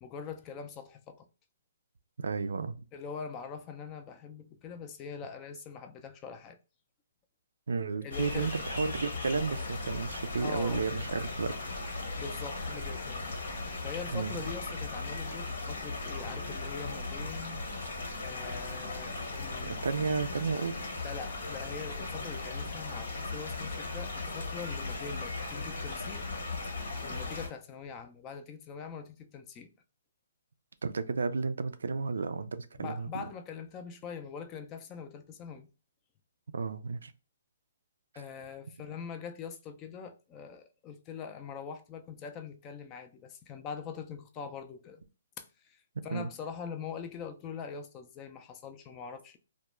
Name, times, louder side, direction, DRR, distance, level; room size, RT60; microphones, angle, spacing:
voice 1, 0.0-1.3 2.9-6.6 8.0-8.6 10.4-10.8 12.2-13.2 13.8-17.6 18.2-19.9 21.0-26.2 27.0-29.7 32.7-35.7 38.1-45.0 45.4-49.4, left 6 dB, 25° left, 0.4 m, -43 dB
voice 2, 2.2-2.8 7.7-11.5 14.1-14.4 19.6-20.7 30.8-33.3 36.5-37.1 46.1-46.3, right 4 dB, 80° right, 0.3 m, -32 dB
sound 1, 8.1-27.5, left 3 dB, 70° left, 0.9 m, -37 dB
2.3 x 2.1 x 3.0 m
hypercardioid pair, 145°, 0 cm